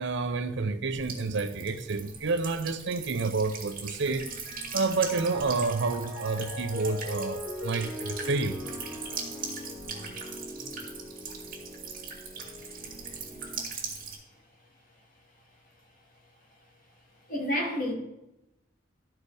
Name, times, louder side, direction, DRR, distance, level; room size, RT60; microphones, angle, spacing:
voice 1, 0.0-4.3 4.7-8.6, right 3 dB, 65° right, 0.6 m, -29 dB
Buzz / Water tap faucet / Trickle dribble, 0.9-14.1, right 5 dB, 45° right, 2.0 m, -40 dB
Piano, 3.9-13.5, left 1 dB, 70° left, 3.0 m, -41 dB
voice 2, 17.3-17.9, equal, 45° left, 2.4 m, -29 dB
12.5 x 4.7 x 4.9 m
head